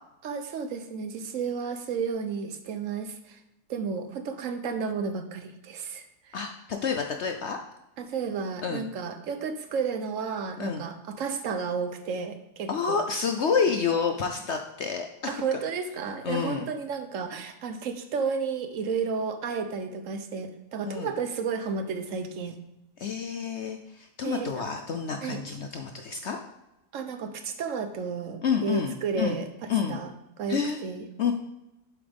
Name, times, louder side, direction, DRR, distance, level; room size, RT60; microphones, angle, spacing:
voice 1, 0.2-3.4 3.7-6.4 8.0-13.0 15.3-22.6 24.2-24.6 25.2-25.4 26.9-29.4 29.9-30.1 30.4-31.0, right 5 dB, 60° right, 8 dB, 1.0 m, -32 dB
voice 2, 6.3-7.6 8.6-8.8 10.6-10.9 12.7-15.6 16.2-16.7 20.9-21.1 23.0-26.4 28.4-29.4 29.7-30.0 30.5-30.8 31.2-31.3, left 6 dB, 65° left, 5 dB, 0.7 m, -29 dB
7.7 x 7.6 x 3.5 m, 0.94 s
omnidirectional pair, 1.8 m